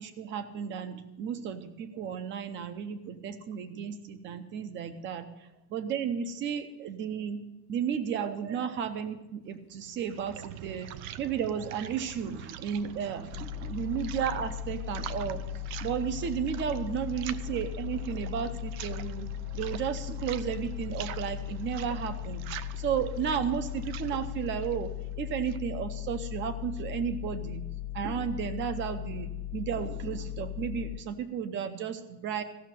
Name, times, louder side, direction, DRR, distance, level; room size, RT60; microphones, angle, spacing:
voice 1, 0.0-5.2 5.7-7.4 7.7-10.9 11.2-15.4 15.8-19.3 19.5-22.4 22.8-24.9 25.2-27.6 27.9-32.4, right 8 dB, 25° right, 11 dB, 0.7 m, -33 dB
sound 1, 9.7-25.7, right 9 dB, 65° right, 0.7 m, -44 dB
sound 2, 13.3-31.0, left 14 dB, 70° left, 1.7 m, -38 dB
15.0 x 6.4 x 7.5 m, 0.96 s
cardioid pair, 175°, 44 cm